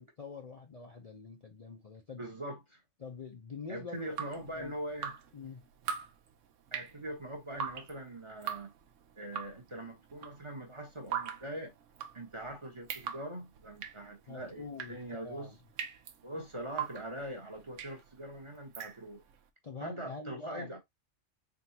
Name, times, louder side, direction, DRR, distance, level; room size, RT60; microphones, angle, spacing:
voice 1, 0.0-2.2 3.0-4.2 4.5-4.7 5.3-5.6 14.3-15.6 19.6-20.7, left 4 dB, 40° left, 0.6 m, -45 dB
voice 2, 2.2-2.8 3.7-5.1 6.7-8.7 9.2-11.7 12.1-15.5 16.2-19.2 19.8-20.8, right 1 dB, 25° right, 0.9 m, -42 dB
Drip, 3.9-19.4, right 8 dB, 75° right, 1.0 m, -42 dB
3.8 x 3.6 x 2.8 m
omnidirectional pair, 1.3 m